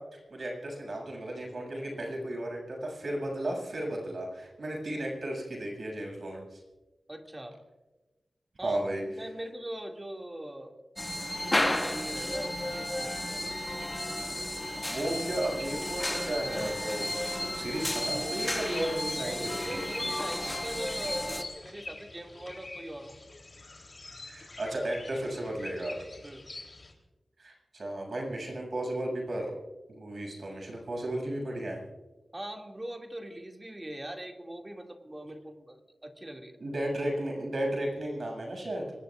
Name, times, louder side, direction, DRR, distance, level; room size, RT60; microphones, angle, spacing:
voice 1, 0.0-6.6 8.6-9.0 14.9-17.1 17.5-19.8 24.2-26.0 27.4-29.6 29.9-31.8 36.6-38.9, right 1 dB, 65° right, 0 dB, 7.3 m, -34 dB
voice 2, 7.1-7.6 8.6-10.8 11.6-13.5 19.2-23.3 26.2-26.5 32.3-36.6, right 1 dB, 25° right, 2 dB, 2.4 m, -41 dB
sound 1, 11.0-21.4, left 1 dB, 20° left, 2.0 m, -33 dB
sound 2, 17.3-26.9, left 2 dB, 45° left, 3.5 m, -46 dB
25.5 x 21.5 x 2.5 m, 1.1 s
cardioid pair, 50°, 0 cm